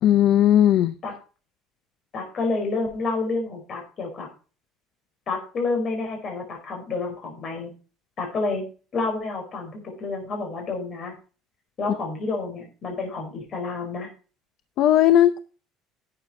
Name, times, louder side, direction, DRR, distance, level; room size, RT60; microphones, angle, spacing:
voice 1, 0.0-0.9 14.8-15.4, left 11 dB, 50° left, 0.6 m, -17 dB
voice 2, 2.1-4.3 5.3-7.7 8.2-8.6 8.9-11.1 11.8-14.1, left 3 dB, 30° left, 5.0 m, -29 dB
11.5 x 8.9 x 3.9 m
cardioid pair, 175°, 0 cm